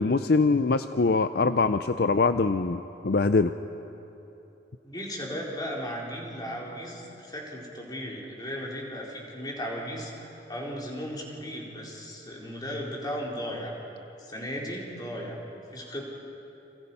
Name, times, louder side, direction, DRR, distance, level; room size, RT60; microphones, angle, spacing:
voice 1, 0.0-3.5, left 3 dB, 60° left, 10 dB, 0.5 m, -23 dB
voice 2, 4.8-13.7 14.2-15.4 15.7-16.0, equal, 25° left, -2 dB, 4.0 m, -36 dB
30.0 x 25.5 x 5.6 m, 3.0 s
head